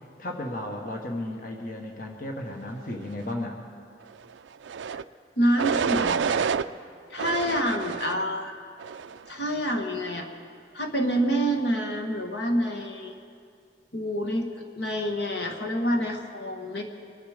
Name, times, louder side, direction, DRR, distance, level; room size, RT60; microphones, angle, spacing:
voice 1, 0.2-3.6, left 1 dB, 50° left, 2 dB, 1.3 m, -34 dB
sound 1, 4.6-5.0 5.6-6.7 7.2-8.2 8.8-9.2, right 6 dB, 85° right, 0.4 m, -28 dB
voice 2, 5.4-6.6 7.1-8.5 9.3-10.3 10.7-13.1 13.9-14.5 14.8-16.8, equal, 65° left, 4 dB, 1.4 m, -27 dB
24.5 x 10.5 x 5.0 m, 2.2 s
head